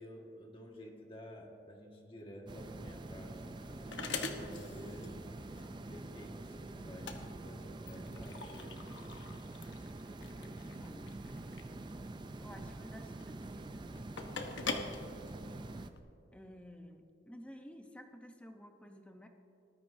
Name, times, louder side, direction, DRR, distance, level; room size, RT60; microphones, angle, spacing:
voice 1, 0.0-3.4 4.2-5.2 5.5-8.9, equal, 30° left, 0 dB, 1.6 m, -51 dB
sound 1, 2.5-15.9, right 2 dB, 25° right, 0.4 m, -46 dB
sound 2, 2.7-16.0, left 4 dB, 75° left, 1.0 m, -45 dB
voice 2, 10.1-11.1 12.4-14.1 16.3-19.3, equal, 5° left, 4 dB, 0.8 m, -53 dB
19.5 x 13.0 x 2.7 m, 2.7 s
head